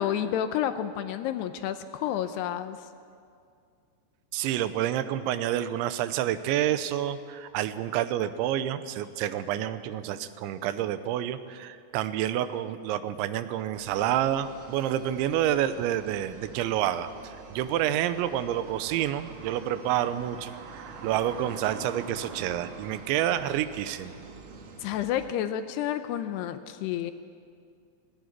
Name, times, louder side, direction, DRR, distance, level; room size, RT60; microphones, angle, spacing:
voice 1, 0.0-2.8 24.8-27.1, left 10 dB, 80° left, 10 dB, 2.6 m, -30 dB
voice 2, 4.3-24.2, right 11 dB, 90° right, 12 dB, 3.2 m, -29 dB
sound 1, 13.7-25.3, right 5 dB, 65° right, 3.4 m, -45 dB
18.5 x 17.0 x 9.6 m, 2.3 s
omnidirectional pair, 5.2 m